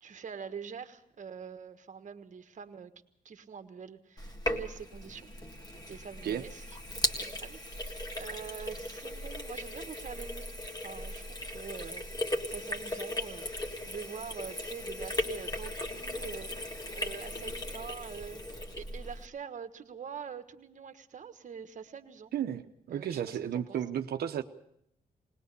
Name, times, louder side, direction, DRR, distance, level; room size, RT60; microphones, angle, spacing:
voice 1, 0.0-2.9 3.2-5.3 5.9-6.8 7.2-10.5 10.8-22.3 22.9-23.8, right 7 dB, 50° right, 9 dB, 1.3 m, -45 dB
Sink (filling or washing), 4.2-19.3, left 1 dB, 25° left, 1.8 m, -37 dB
voice 2, 22.3-24.4, right 9 dB, 85° right, 7 dB, 0.9 m, -33 dB
20.0 x 20.0 x 6.7 m, 0.73 s
cardioid pair, 110°, 16 cm